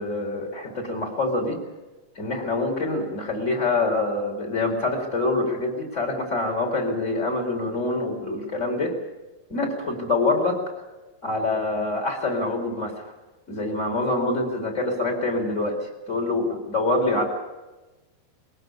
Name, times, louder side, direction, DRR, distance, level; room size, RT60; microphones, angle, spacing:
voice 1, 0.0-1.6 2.2-9.0 9.5-10.6 11.2-13.1 13.5-17.2, left 2 dB, 20° left, 2 dB, 4.6 m, -25 dB
22.0 x 18.0 x 8.4 m, 1.1 s
omnidirectional pair, 3.9 m